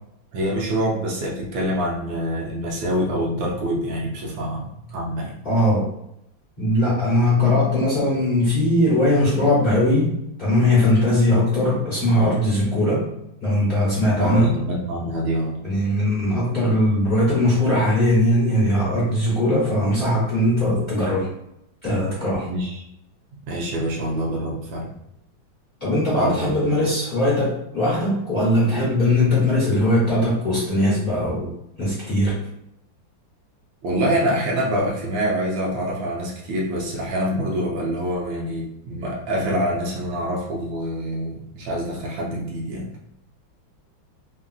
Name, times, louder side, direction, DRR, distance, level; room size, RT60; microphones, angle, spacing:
voice 1, 0.3-5.3 14.1-15.6 22.4-22.8 23.5-24.9 26.1-26.8 28.7-28.9 33.8-42.9, equal, 75° right, -2 dB, 1.3 m, -26 dB
voice 2, 5.4-5.9 6.6-10.1 10.4-13.0 13.4-14.5 15.6-21.3 21.8-22.5 25.8-31.5 31.8-32.4, left 1 dB, 35° left, -9 dB, 1.0 m, -20 dB
3.6 x 2.4 x 2.3 m, 0.78 s
omnidirectional pair, 2.2 m